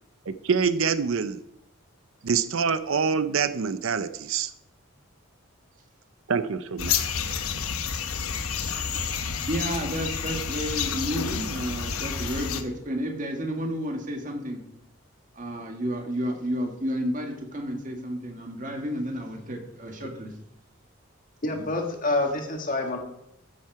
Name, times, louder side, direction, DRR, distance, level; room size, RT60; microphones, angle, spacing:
voice 1, 0.3-1.4 2.2-4.5 6.3-6.9, right 6 dB, 70° right, 12 dB, 0.6 m, -25 dB
sound 1, 6.8-12.6, left 6 dB, 80° left, 1.0 m, -29 dB
voice 2, 9.5-14.6 15.4-20.3 21.5-21.6, equal, 35° right, 3 dB, 1.8 m, -31 dB
voice 3, 21.4-23.0, left 2 dB, 40° left, 3 dB, 1.7 m, -27 dB
14.0 x 7.5 x 4.8 m, 0.77 s
head